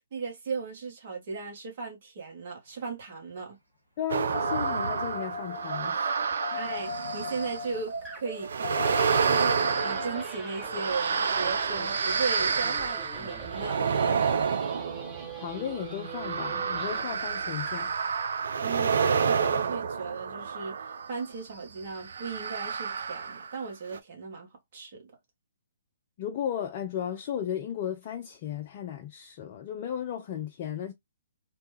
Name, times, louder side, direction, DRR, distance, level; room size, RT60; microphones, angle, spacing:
voice 1, 0.1-3.6 6.4-8.7 9.2-13.9 18.6-25.1, right 4 dB, 45° right, 1.1 m, -37 dB
voice 2, 4.0-6.1 6.5-6.6 15.4-17.9 26.2-30.9, left 9 dB, 40° left, 0.5 m, -35 dB
sound 1, 4.1-7.8 8.4-21.2 22.0-23.6 23.9-24.0, right 6 dB, 65° right, 0.4 m, -29 dB
sound 2, 4.3-12.7 15.4-15.5, left 3 dB, 80° right, 1.4 m, -38 dB
sound 3, 6.2-6.4 8.1-8.4 8.8-17.2 17.6-17.9, right 5 dB, 15° right, 0.9 m, -43 dB
2.8 x 2.2 x 3.1 m
figure-of-eight pair, 130°, 0 cm